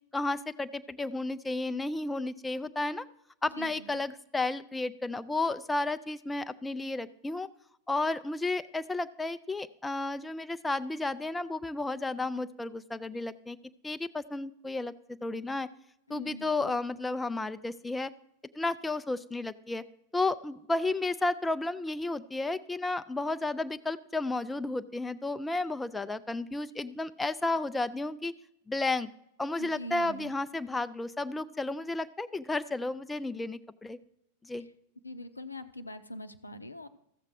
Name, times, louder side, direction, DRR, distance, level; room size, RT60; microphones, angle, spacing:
voice 1, 0.1-3.1 3.4-7.5 7.9-13.6 13.8-14.9 15.2-15.7 16.1-18.1 18.5-19.8 20.1-28.3 28.7-29.1 29.4-34.0 34.4-34.7, left 2 dB, 10° left, 11 dB, 0.4 m, -32 dB
voice 2, 3.5-4.0 16.1-16.8 29.6-30.3 35.0-36.9, equal, 80° left, 10 dB, 0.6 m, -43 dB
14.0 x 7.5 x 4.6 m, 0.79 s
figure-of-eight pair, 90°, 0 cm